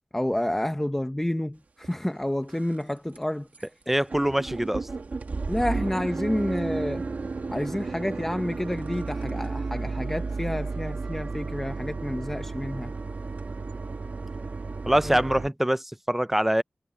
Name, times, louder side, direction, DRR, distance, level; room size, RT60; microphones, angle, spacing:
voice 1, 0.1-3.7 5.5-7.0 7.5-12.9 15.0-15.2, left 1 dB, 10° left, 1.1 m, -29 dB
sound 1, 1.8-1.9 2.4-2.8 3.1-3.2 3.5-3.7 3.9-15.5, right 4 dB, 70° right, 1.8 m, -33 dB
voice 2, 3.9-4.9 14.9-16.6, right 1 dB, 10° right, 0.5 m, -24 dB
wide cardioid pair, 70°, 3 cm